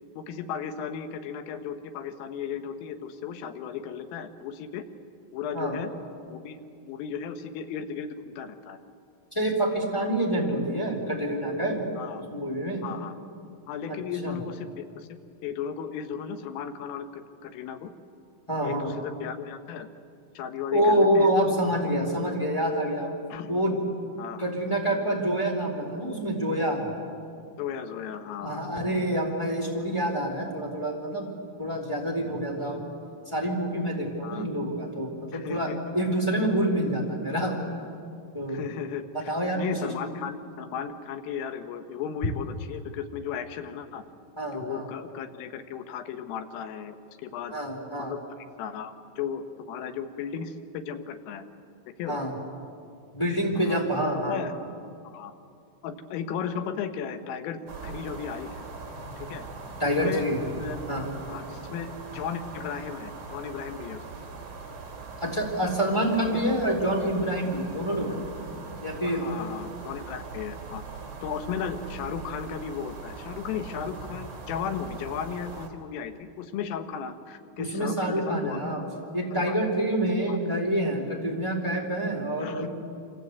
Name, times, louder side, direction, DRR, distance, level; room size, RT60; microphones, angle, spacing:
voice 1, 0.2-4.8 5.3-5.9 6.3-6.6 6.8-8.8 12.0-12.2 12.8-13.1 13.7-15.1 15.4-17.9 18.6-19.9 20.4-21.3 23.3-23.6 24.2-24.5 27.6-28.7 34.2-34.5 35.3-35.8 38.5-44.1 44.5-47.0 47.2-47.6 48.0-48.2 48.6-51.5 52.0-52.2 53.6-53.8 54.2-54.5 55.1-55.3 55.8-58.7 59.2-59.4 59.9-60.3 60.6-60.8 61.3-64.0 66.3-66.4 69.1-70.8 71.2-79.0 79.3-79.6 80.3-80.4 82.4-82.7, left 7 dB, 85° left, 7 dB, 4.0 m, -35 dB
voice 2, 9.3-11.8 12.3-12.8 13.9-14.4 18.5-18.9 20.7-23.1 23.5-23.8 24.4-26.9 28.4-31.3 31.6-32.8 33.3-37.5 38.3-38.6 39.1-39.9 44.4-44.8 47.5-48.1 52.1-52.3 53.1-54.5 59.8-60.4 60.9-61.1 65.2-68.1 68.8-69.2 77.6-78.8 79.1-82.7, right 1 dB, 5° left, -1 dB, 3.2 m, -27 dB
sound 1, 57.7-75.7, right 4 dB, 40° right, 3.5 m, -41 dB
27.0 x 26.5 x 8.3 m, 2.4 s
omnidirectional pair, 5.7 m